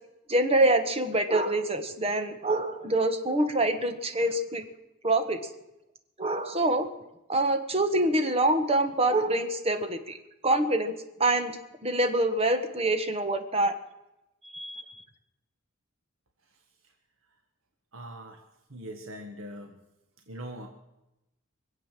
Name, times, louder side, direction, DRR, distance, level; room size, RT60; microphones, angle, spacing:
voice 1, 0.3-4.7 5.0-5.4 6.2-6.9 7.3-10.2 10.4-10.9 11.2-11.5 11.8-13.7 14.5-14.9, right 1 dB, 30° right, 7 dB, 1.4 m, -25 dB
voice 2, 17.9-18.4 18.7-19.8 20.3-20.7, right 1 dB, 65° right, 4 dB, 1.5 m, -41 dB
24.0 x 8.1 x 7.5 m, 0.93 s
head